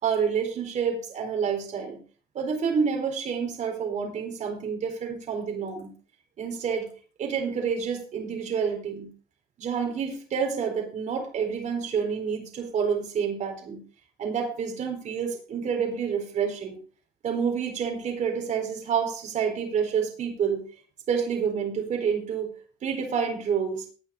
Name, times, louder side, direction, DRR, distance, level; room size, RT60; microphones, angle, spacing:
voice 1, 0.0-2.0 2.3-5.9 6.4-6.9 7.2-9.1 9.6-13.8 14.2-16.8 17.2-20.6 21.1-22.5 22.8-23.8, right 6 dB, 45° right, 2 dB, 4.0 m, -28 dB
18.0 x 9.1 x 3.8 m, 0.39 s
cardioid pair, 140°, 17 cm